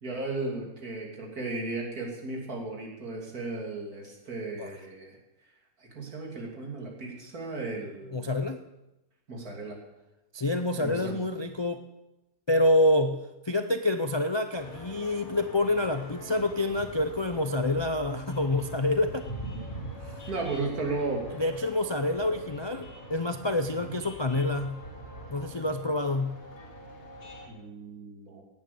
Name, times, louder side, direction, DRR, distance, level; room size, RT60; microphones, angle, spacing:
voice 1, 0.0-5.2 5.8-8.3 9.3-9.8 10.7-11.1 20.3-21.2 23.8-23.9 27.4-28.4, right 3 dB, 80° right, -1 dB, 3.3 m, -35 dB
voice 2, 8.1-8.6 10.3-11.8 12.5-19.3 19.9-20.3 21.4-24.8 25.3-26.4, left 1 dB, 45° left, 7 dB, 0.3 m, -27 dB
sound 1, 14.6-27.5, right 1 dB, 65° left, 3.7 m, -43 dB
17.0 x 9.1 x 6.9 m, 0.99 s
omnidirectional pair, 1.6 m